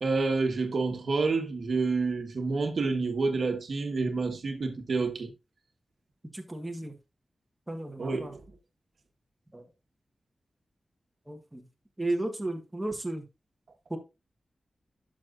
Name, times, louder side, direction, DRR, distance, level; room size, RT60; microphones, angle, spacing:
voice 1, 0.0-5.3 8.0-8.4, right 3 dB, 65° right, 1.3 m, -28 dB
voice 2, 6.3-6.9 7.7-8.3 9.5-9.6 11.3-11.6 12.0-13.2 13.9-14.0, right 2 dB, 10° right, 1.3 m, -34 dB
11.5 x 6.2 x 2.5 m
wide cardioid pair, 130°, 0 cm